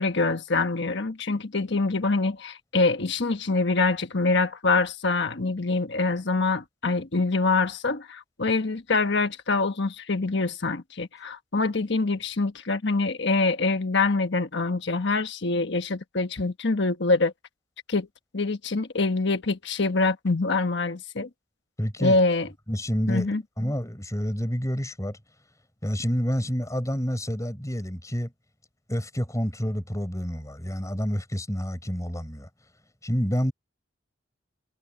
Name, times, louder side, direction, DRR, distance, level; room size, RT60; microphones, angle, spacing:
voice 1, 0.0-17.3 17.9-18.1 18.3-21.3 22.0-22.5 23.1-23.4, left 3 dB, 65° left, 1.3 m, -25 dB
voice 2, 21.8-22.2 22.7-23.3 23.6-25.2 25.8-28.3 28.9-32.5 33.0-33.5, equal, 15° left, 5.6 m, -28 dB
head